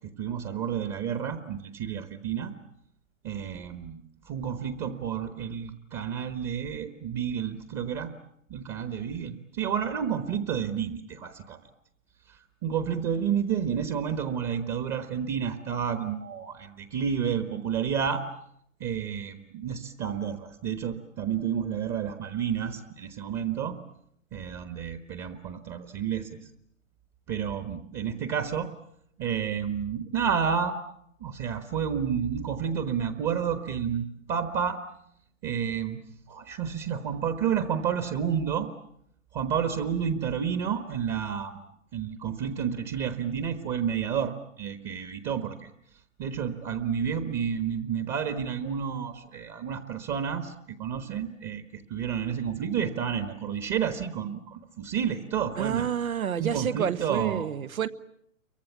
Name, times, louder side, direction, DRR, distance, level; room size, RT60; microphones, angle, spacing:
voice 1, 0.2-2.5 3.2-8.1 8.5-11.6 12.3-18.2 18.8-23.8 24.3-26.4 27.3-28.7 29.2-30.8 31.2-34.8 35.4-36.0 36.3-38.7 39.3-41.6 41.9-45.7 46.2-55.9 56.4-57.5, right 8 dB, 25° right, 1.3 m, -30 dB
voice 2, 55.6-57.9, right 8 dB, 80° right, 1.3 m, -29 dB
28.5 x 23.5 x 7.2 m
hypercardioid pair, 135°, 41 cm